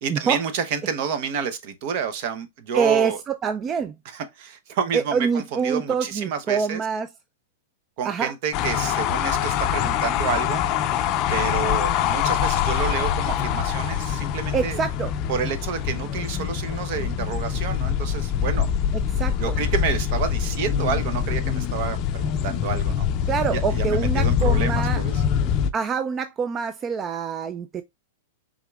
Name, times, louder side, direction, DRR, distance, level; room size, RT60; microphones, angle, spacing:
voice 1, 0.0-3.2 4.1-6.8 8.0-10.6 10.9-11.0 11.3-14.8 15.3-18.7 19.4-23.1 23.5-25.2, right 7 dB, 50° right, 0.8 m, -29 dB
voice 2, 2.7-4.0 4.9-7.1 8.0-8.3 14.5-15.1 19.1-19.6 23.3-25.0 25.7-27.8, right 6 dB, 20° right, 0.3 m, -25 dB
sound 1, 8.5-25.7, left 9 dB, 35° left, 0.5 m, -24 dB
5.1 x 3.6 x 2.3 m
hypercardioid pair, 140°, 0 cm